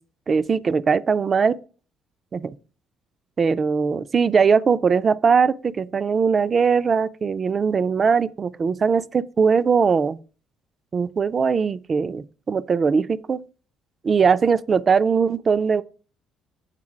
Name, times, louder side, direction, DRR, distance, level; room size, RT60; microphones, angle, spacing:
voice 1, 0.3-1.6 2.3-2.5 3.4-10.2 10.9-13.4 14.0-15.8, right 5 dB, 40° right, 0.4 m, -20 dB
7.4 x 3.9 x 4.9 m
supercardioid pair, 80°, 0 cm